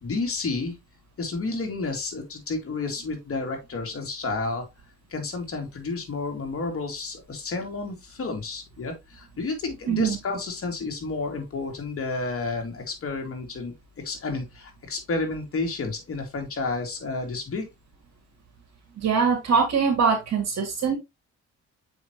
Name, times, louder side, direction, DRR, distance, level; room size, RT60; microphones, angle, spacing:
voice 1, 0.0-0.8 1.2-4.6 5.1-13.7 14.0-17.6, left 3 dB, 50° left, 2.8 m, -31 dB
voice 2, 9.9-10.2 19.0-20.9, right 6 dB, 60° right, 2.6 m, -23 dB
7.0 x 5.5 x 3.0 m
cardioid pair, 90°, 30 cm